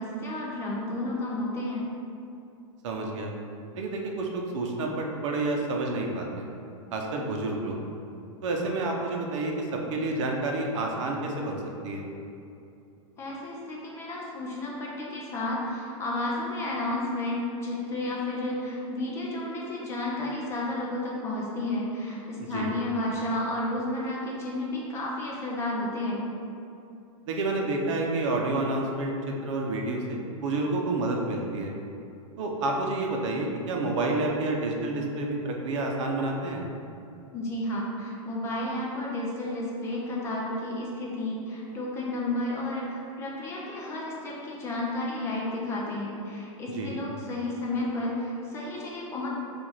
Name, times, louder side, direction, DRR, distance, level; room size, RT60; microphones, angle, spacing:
voice 1, 0.0-1.8 13.2-26.2 37.3-49.3, left 1 dB, 15° left, -4 dB, 0.4 m, -32 dB
voice 2, 2.8-3.3 3.7-6.5 6.9-7.8 8.4-12.0 22.4-22.7 27.3-29.1 29.4-31.7 32.4-36.6 46.7-46.9, right 2 dB, 60° right, 0 dB, 0.7 m, -29 dB
4.7 x 2.5 x 4.2 m, 2.7 s
supercardioid pair, 160°, 18 cm